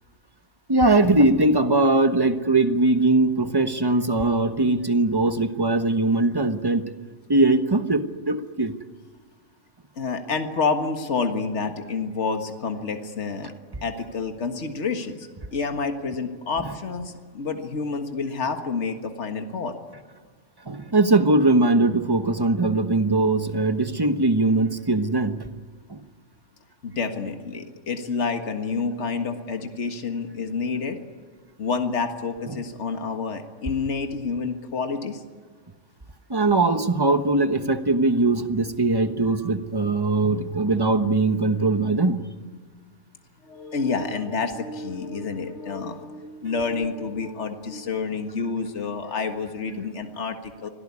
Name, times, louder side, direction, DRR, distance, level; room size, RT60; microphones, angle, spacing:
voice 1, 0.7-6.9 7.3-8.7 20.7-25.4 25.9-26.0 32.5-32.6 36.3-42.2, right 2 dB, 20° right, 9 dB, 1.1 m, -21 dB
voice 2, 10.0-13.5 13.8-19.8 26.8-31.0 31.6-35.2 43.4-50.7, left 4 dB, 60° left, 6 dB, 1.9 m, -28 dB
25.5 x 17.5 x 9.7 m, 1.5 s
omnidirectional pair, 1.4 m